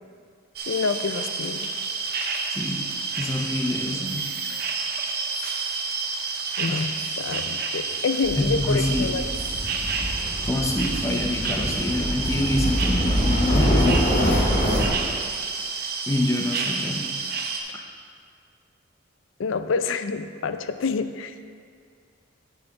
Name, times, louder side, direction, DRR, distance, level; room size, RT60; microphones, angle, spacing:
sound 1, 0.6-17.6, right 4 dB, 50° right, 0.7 m, -29 dB
voice 1, 0.7-1.7 6.6-9.2 19.4-21.3, left 4 dB, 85° left, 11 dB, 0.4 m, -27 dB
voice 2, 2.5-2.8 3.2-4.3 6.7-6.9 8.4-9.1 10.4-14.1 16.1-17.1 17.7-17.8, left 1 dB, 15° left, 2 dB, 0.5 m, -26 dB
sound 2, 8.2-14.9, equal, 40° left, 1.4 m, -25 dB
9.2 x 7.0 x 3.9 m, 2.1 s
head